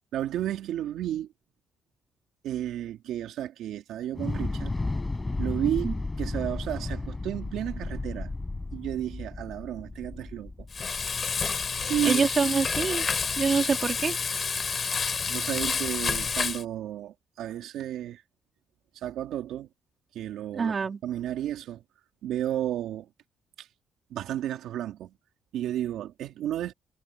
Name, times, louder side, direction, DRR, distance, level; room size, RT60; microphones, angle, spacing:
voice 1, 0.1-1.3 2.4-4.7 5.4-8.3 8.7-10.5 11.9-12.2 13.5-13.7 15.3-18.2 18.9-19.7 20.1-20.7 21.0-21.8 22.2-23.1 23.6-23.7 24.1-25.1 25.5-26.7, right 11 dB, 80° right, 2.6 m, -32 dB
Thunder / Explosion, 4.1-12.3, left 2 dB, 20° left, 7.1 m, -34 dB
Frying (food), 10.7-16.6, left 5 dB, 40° left, 7.8 m, -29 dB
voice 2, 12.0-13.1 13.4-14.2 20.5-21.0, right 5 dB, 40° right, 3.7 m, -25 dB
cardioid pair, 90°, 0 cm